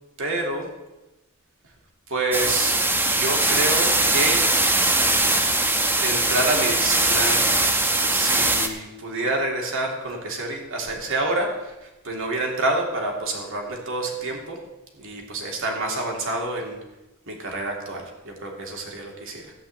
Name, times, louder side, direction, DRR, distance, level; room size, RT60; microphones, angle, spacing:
voice 1, 0.2-0.7 2.1-2.8 3.0-4.4 6.0-14.6 14.9-16.8 17.3-19.5, right 2 dB, 65° right, 1 dB, 3.0 m, -28 dB
sound 1, 2.3-8.7, right 2 dB, 10° right, 1.0 m, -21 dB
13.5 x 5.7 x 8.8 m, 1.1 s
head